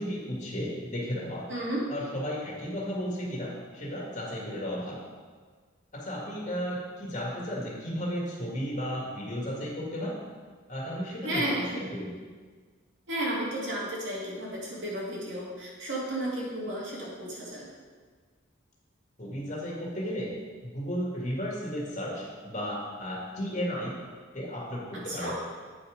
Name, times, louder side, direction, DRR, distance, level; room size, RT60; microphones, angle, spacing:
voice 1, 0.0-1.5 1.9-5.0 5.9-10.2 10.7-12.1 19.2-20.3 20.6-24.0 24.3-25.3, equal, 35° left, -3 dB, 2.1 m, -34 dB
voice 2, 1.5-1.8 11.2-11.8 13.1-17.7 25.1-25.3, right 1 dB, 65° right, -5 dB, 2.5 m, -33 dB
8.8 x 5.7 x 5.1 m, 1.5 s
head